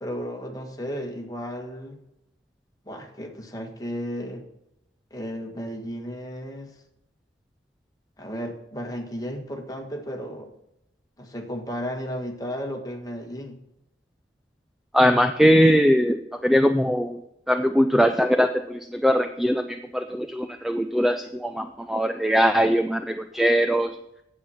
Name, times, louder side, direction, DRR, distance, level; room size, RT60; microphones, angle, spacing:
voice 1, 0.0-2.0 2.8-4.5 5.1-6.7 8.2-10.5 11.2-13.6, equal, 20° left, 2 dB, 1.6 m, -34 dB
voice 2, 14.9-17.2 17.5-24.0, equal, ahead, 8 dB, 0.4 m, -21 dB
9.3 x 7.6 x 5.7 m, 0.82 s
head